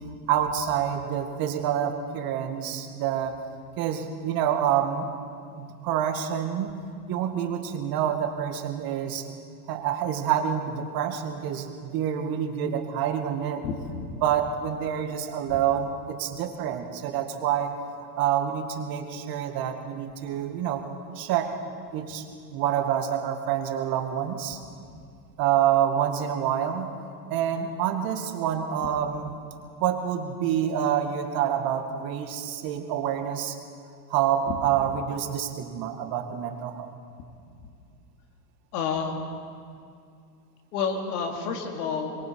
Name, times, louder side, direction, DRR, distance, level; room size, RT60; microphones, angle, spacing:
voice 1, 0.3-3.4 3.8-5.1 5.6-6.8 7.1-9.3 9.7-13.6 14.2-17.8 18.2-20.8 21.2-21.6 21.9-22.3 22.5-24.6 25.4-26.9 27.3-29.3 29.8-33.6 34.1-36.9, right 9 dB, 45° right, 6 dB, 2.2 m, -27 dB
voice 2, 13.6-14.1 34.4-34.6 38.7-39.2 40.7-42.3, left 5 dB, 65° left, 3 dB, 3.1 m, -30 dB
25.5 x 22.5 x 4.8 m, 2.3 s
hypercardioid pair, 105°, 48 cm